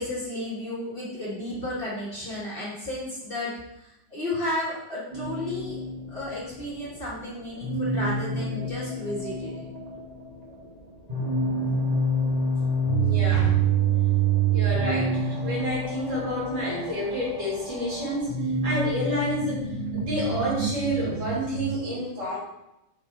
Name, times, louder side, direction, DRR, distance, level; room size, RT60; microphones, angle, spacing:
voice 1, 0.0-3.5 3.8-5.8 6.1-9.6, left 1 dB, 25° left, -7 dB, 1.9 m, -33 dB
sound 1, 5.1-21.8, right 4 dB, 25° right, 1.1 m, -27 dB
voice 2, 13.0-13.6 14.5-18.3 18.6-19.7 19.9-22.4, equal, 55° right, -8 dB, 3.4 m, -29 dB
5.8 x 4.7 x 4.5 m, 0.90 s
omnidirectional pair, 2.3 m